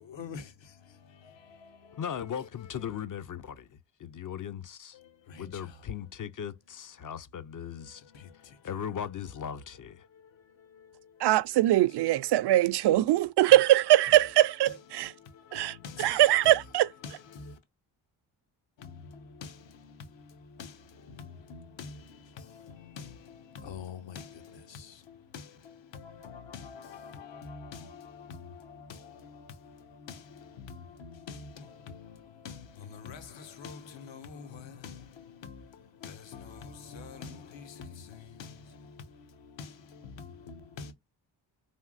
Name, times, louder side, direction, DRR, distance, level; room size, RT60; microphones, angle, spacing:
voice 1, 0.0-3.0 4.9-5.9 7.6-8.8 9.8-12.3 14.0-17.6 18.8-40.9, left 5 dB, 65° left, 1.2 m, -47 dB
voice 2, 2.0-5.0 5.4-8.0 8.6-10.0, left 8 dB, 40° left, 0.6 m, -38 dB
voice 3, 11.2-15.1 15.5-16.9, right 14 dB, 55° right, 0.5 m, -22 dB
3.5 x 2.5 x 2.4 m
supercardioid pair, 50°, 48 cm